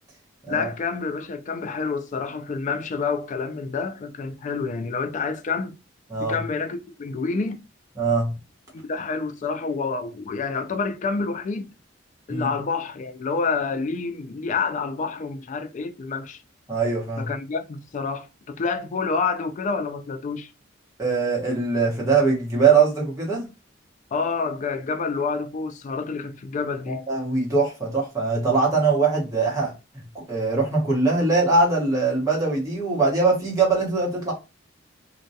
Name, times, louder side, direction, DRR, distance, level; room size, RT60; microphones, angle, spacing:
voice 1, 0.5-5.8 6.2-7.6 8.7-11.7 12.3-16.4 17.2-20.5 24.1-27.1, left 4 dB, 40° left, 0.3 m, -28 dB
voice 2, 8.0-8.3 12.3-12.5 16.7-17.3 21.0-23.5 26.9-29.7 30.1-34.3, right 4 dB, 15° right, 1.0 m, -22 dB
2.2 x 2.2 x 2.7 m
head